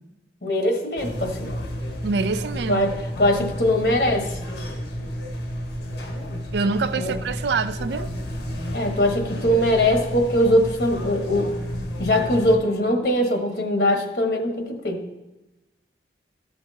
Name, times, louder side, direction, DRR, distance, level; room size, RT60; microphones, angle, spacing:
voice 1, 0.4-1.5 2.7-4.4 7.0-7.1 8.7-11.5 12.0-15.0, left 1 dB, 65° left, 3 dB, 1.2 m, -21 dB
sound 1, 1.0-12.6, equal, 80° left, 1.5 m, -31 dB
voice 2, 2.0-2.8 6.5-8.1, right 4 dB, 75° right, 12 dB, 0.4 m, -25 dB
13.5 x 6.0 x 2.8 m, 1.0 s
head